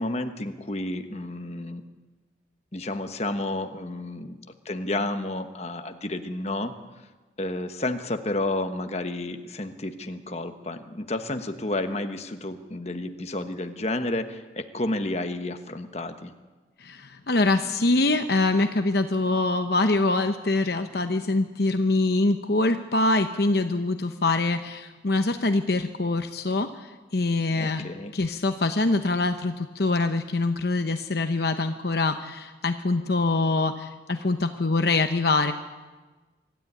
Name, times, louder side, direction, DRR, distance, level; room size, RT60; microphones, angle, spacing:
voice 1, 0.0-1.8 2.7-4.4 4.6-6.7 7.4-16.3 27.6-28.1, left 2 dB, 35° left, 7 dB, 1.2 m, -31 dB
voice 2, 16.8-27.9 28.1-35.5, left 2 dB, 55° left, 7 dB, 0.9 m, -24 dB
25.0 x 12.5 x 9.2 m, 1.3 s
head